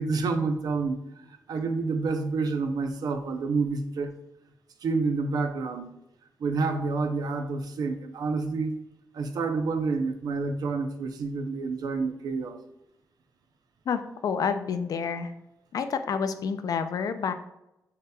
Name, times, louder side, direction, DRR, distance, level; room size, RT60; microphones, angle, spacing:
voice 1, 0.0-4.1 4.8-5.9 6.4-8.7 9.1-12.6, right 4 dB, 80° right, 7 dB, 0.5 m, -28 dB
voice 2, 13.9-15.3 15.7-17.3, left 6 dB, 70° left, 9 dB, 0.4 m, -29 dB
6.6 x 2.8 x 2.2 m, 0.87 s
wide cardioid pair, 125°, 7 cm